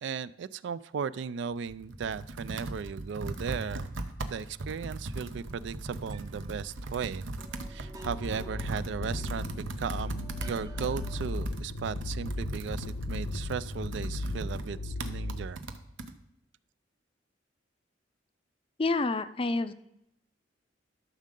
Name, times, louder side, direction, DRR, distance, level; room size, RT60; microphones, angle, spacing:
voice 1, 0.0-4.0 4.3-7.2 7.7-15.6, right 6 dB, 65° right, 17 dB, 0.3 m, -36 dB
Computer keyboard, 1.5-16.1, right 2 dB, 80° right, 0.8 m, -39 dB
sound 1, 5.4-11.5, right 1 dB, 20° right, 0.6 m, -48 dB
sound 2, 8.1-15.4, left 2 dB, 80° left, 0.6 m, -36 dB
voice 2, 18.8-19.7, left 3 dB, 30° left, 12 dB, 0.4 m, -28 dB
13.0 x 6.5 x 3.7 m, 0.81 s
head